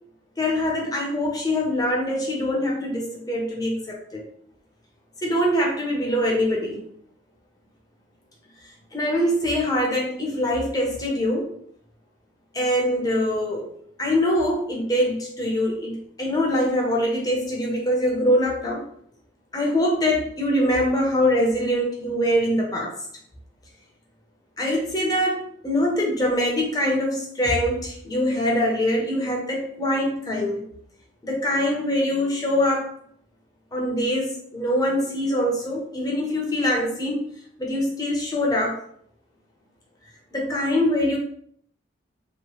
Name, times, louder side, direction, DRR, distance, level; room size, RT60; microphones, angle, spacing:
voice 1, 0.4-4.3 5.2-6.8 8.9-11.5 12.5-13.7 14.0-18.9 19.5-22.9 24.6-30.7 31.2-32.9 33.7-37.3 37.6-38.8 40.3-41.2, left 1 dB, 20° left, -1 dB, 0.6 m, -23 dB
2.9 x 2.0 x 3.0 m, 0.64 s
head